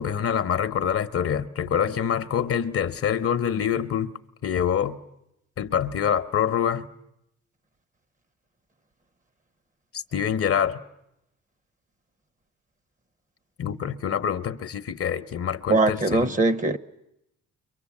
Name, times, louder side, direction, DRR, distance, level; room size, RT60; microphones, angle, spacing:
voice 1, 0.0-4.1 4.4-5.0 5.6-6.9 10.1-10.8 13.6-16.3, left 8 dB, 50° left, 0.9 m, -25 dB
voice 2, 15.7-16.8, right 2 dB, 25° right, 0.9 m, -21 dB
29.5 x 24.0 x 7.2 m
cardioid pair, 90°, 30 cm